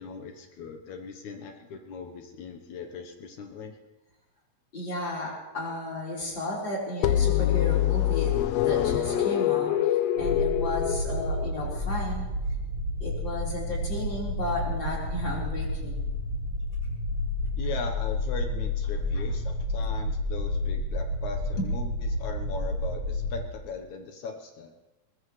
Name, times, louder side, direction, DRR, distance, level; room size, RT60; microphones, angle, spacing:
voice 1, 0.0-3.8 17.6-24.7, left 4 dB, 65° left, 5 dB, 2.3 m, -39 dB
voice 2, 4.7-12.3 13.0-16.1, left 1 dB, 35° left, -4 dB, 4.8 m, -34 dB
sound 1, 7.0-11.8, left 12 dB, 90° left, 1.4 m, -25 dB
sound 2, 10.2-23.4, left 1 dB, 45° right, 2.8 m, -30 dB
22.0 x 20.5 x 3.2 m, 1.1 s
omnidirectional pair, 3.9 m